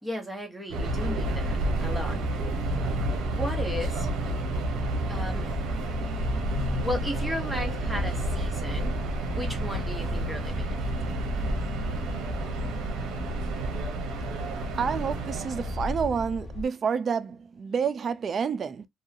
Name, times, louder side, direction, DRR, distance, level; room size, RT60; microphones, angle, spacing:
voice 1, 0.0-2.2 3.2-4.1 5.1-5.5 6.8-8.9 9.3-10.8, equal, 5° right, 1.1 m, -35 dB
Subway metro underground, 0.7-16.0, right 2 dB, 85° right, 0.7 m, -30 dB
sound 1, 0.8-16.6, left 2 dB, 50° left, 0.5 m, -36 dB
voice 2, 14.8-18.9, right 6 dB, 50° right, 0.4 m, -29 dB
2.6 x 2.3 x 2.5 m
cardioid pair, 90°, 0 cm